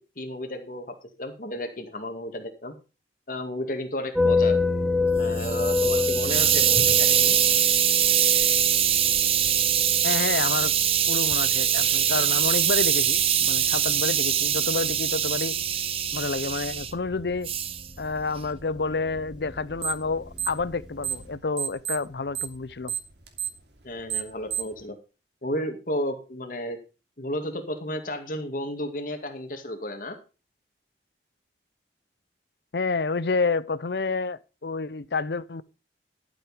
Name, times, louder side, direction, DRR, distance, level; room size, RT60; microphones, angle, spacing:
voice 1, 0.2-2.8 3.3-4.6 5.2-7.4 23.8-25.0 25.4-26.8 27.2-30.2, left 1 dB, 50° left, 2.2 m, -33 dB
sound 1, 4.1-21.4, left 3 dB, 5° right, 2.3 m, -31 dB
Hiss, 5.1-16.9 17.4-17.8, right 10 dB, 30° right, 0.7 m, -23 dB
voice 2, 10.0-10.7 11.0-15.6 16.1-17.5 18.0-22.9 32.7-35.6, left 4 dB, 70° left, 0.6 m, -29 dB
sound 2, 19.8-20.1 20.3-21.3 21.6-24.8, right 9 dB, 75° right, 2.9 m, -30 dB
12.0 x 8.1 x 5.0 m
head